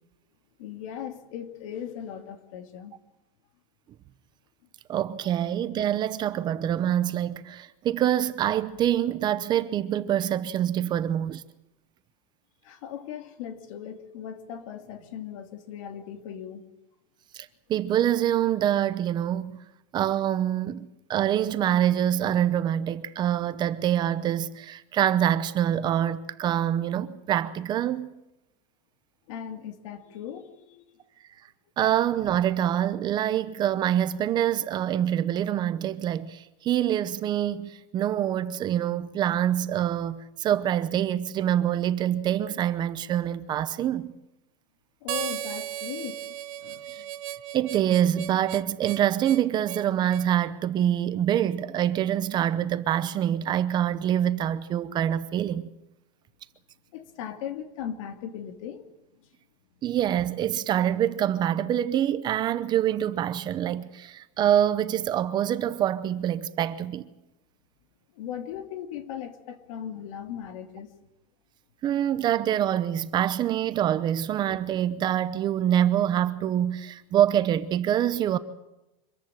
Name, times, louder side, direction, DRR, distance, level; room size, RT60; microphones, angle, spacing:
voice 1, 0.6-2.9 5.2-5.3 12.6-16.6 29.3-30.8 45.0-46.2 46.6-46.9 56.9-58.8 68.1-70.9, left 9 dB, 70° left, 2.8 m, -38 dB
voice 2, 4.9-11.4 17.3-19.5 19.9-28.2 31.8-44.1 46.9-47.0 47.5-55.7 59.8-67.1 71.8-78.4, right 11 dB, 25° right, 0.8 m, -25 dB
Harmonica, 45.1-50.3, right 13 dB, 90° right, 1.0 m, -36 dB
25.0 x 14.5 x 8.9 m
supercardioid pair, 175°, 17 cm